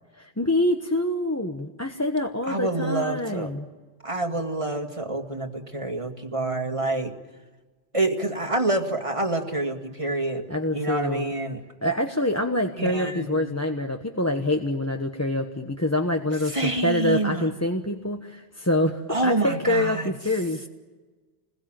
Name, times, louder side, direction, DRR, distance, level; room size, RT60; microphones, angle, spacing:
voice 1, 0.2-3.7 10.5-11.3 11.8-20.7, left 1 dB, 15° left, 3 dB, 1.2 m, -26 dB
voice 2, 2.5-3.5 4.0-7.1 7.9-10.5 10.7-11.6 12.8-13.6 16.5-17.5 19.1-20.1, right 2 dB, 30° right, 4 dB, 2.2 m, -27 dB
28.5 x 21.5 x 9.0 m, 1.3 s
omnidirectional pair, 1.2 m